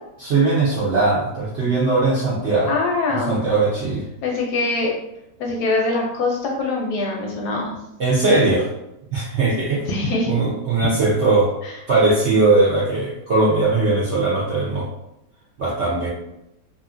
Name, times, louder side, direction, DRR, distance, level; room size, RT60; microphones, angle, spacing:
voice 1, 0.2-2.7 3.3-4.0 8.0-8.7 9.1-9.8 10.3-11.5 11.9-14.9 15.6-16.1, right 3 dB, 70° right, -7 dB, 0.6 m, -19 dB
voice 2, 2.7-3.4 4.2-5.0 5.4-7.7 9.9-10.3 11.6-11.7, left 3 dB, 70° left, 0 dB, 1.0 m, -23 dB
2.7 x 2.6 x 2.5 m, 0.86 s
omnidirectional pair, 2.0 m